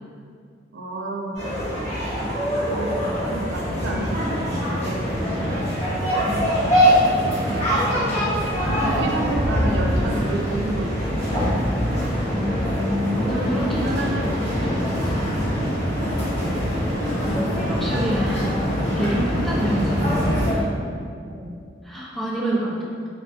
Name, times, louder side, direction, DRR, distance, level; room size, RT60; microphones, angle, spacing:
voice 1, 0.7-1.4 2.2-2.3 2.6-5.7 7.5-7.8 8.8-11.6 13.8-14.6 21.2-21.7 22.4-22.7, right 2 dB, 80° right, 0 dB, 0.4 m, -31 dB
sound 1, 1.3-20.5, equal, 35° left, 1.5 m, -23 dB
voice 2, 6.3-6.6 12.3-14.0 14.6-15.4 17.3-18.7 18.9-20.7 21.8-22.7, equal, ahead, -6 dB, 0.4 m, -28 dB
3.1 x 2.5 x 2.5 m, 2.2 s
head